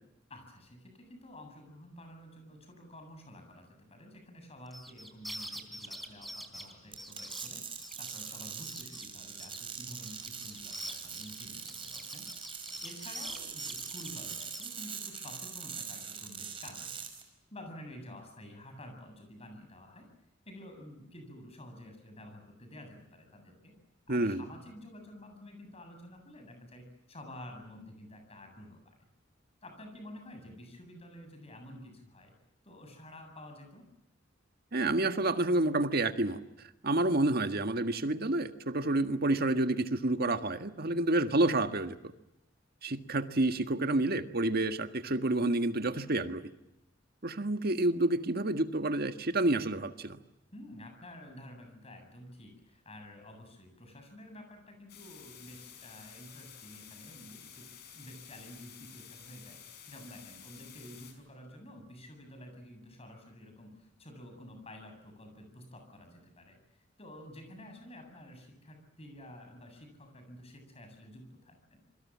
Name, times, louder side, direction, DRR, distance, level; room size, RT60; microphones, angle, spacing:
voice 1, 0.3-12.5 12.8-17.0 17.5-20.1 20.5-23.7 24.1-29.0 29.6-32.3 32.6-33.9 50.5-57.7 57.9-71.8, left 1 dB, 35° left, 6 dB, 7.9 m, -50 dB
sound 1, 4.7-8.3 8.6-9.1 9.4-14.7, equal, ahead, 3.7 m, -45 dB
sound 2, 6.9-17.2, right 6 dB, 30° right, 5.4 m, -43 dB
voice 2, 24.1-24.4 34.7-36.4 36.8-42.1 42.8-46.4 47.2-50.2, right 2 dB, 55° right, 8 dB, 1.7 m, -29 dB
sound 3, 54.9-61.1, left 8 dB, 60° left, 5.8 m, -52 dB
27.5 x 23.5 x 7.5 m, 0.87 s
head